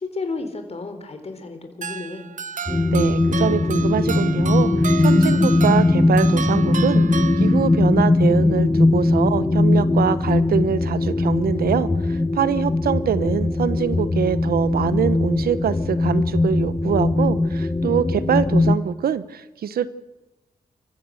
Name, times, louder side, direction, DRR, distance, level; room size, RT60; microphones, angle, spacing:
voice 1, 0.0-2.3, left 3 dB, 45° left, 6 dB, 3.6 m, -32 dB
sound 1, 1.8-8.0, right 8 dB, 55° right, 0.7 m, -32 dB
sound 2, 2.7-18.8, left 2 dB, 20° left, 1.1 m, -20 dB
voice 2, 2.9-7.0 7.4-19.9, right 8 dB, 80° right, 15 dB, 1.0 m, -24 dB
28.5 x 15.0 x 6.4 m, 1.1 s
cardioid pair, 70°, 15 cm